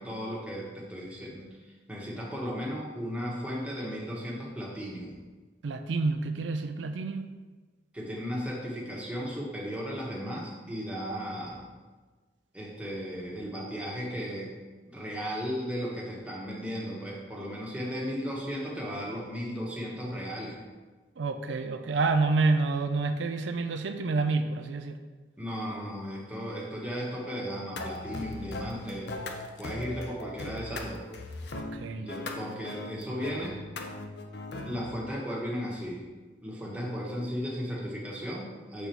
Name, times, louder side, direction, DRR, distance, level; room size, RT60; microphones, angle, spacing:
voice 1, 0.0-5.2 7.9-11.6 12.5-14.5 14.9-20.6 25.4-29.1 29.6-31.0 32.0-33.6 34.7-36.0 36.4-38.9, equal, 5° right, -4 dB, 1.2 m, -35 dB
voice 2, 5.6-7.3 21.2-25.0 31.6-32.1, right 3 dB, 80° right, 8 dB, 0.4 m, -28 dB
sound 1, 27.8-34.9, left 2 dB, 65° left, 0.6 m, -39 dB
6.8 x 4.1 x 4.5 m, 1.3 s
head